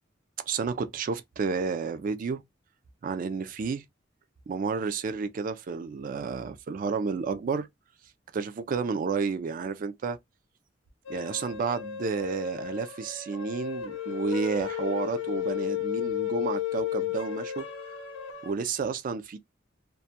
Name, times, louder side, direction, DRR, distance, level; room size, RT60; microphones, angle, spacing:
voice 1, 0.5-2.4 3.0-3.8 4.5-7.7 8.3-10.2 11.1-17.7 18.4-19.4, right 5 dB, 45° right, 0.3 m, -31 dB
sound 1, 11.1-18.5, left 11 dB, 80° left, 0.5 m, -33 dB
2.2 x 2.1 x 2.7 m
head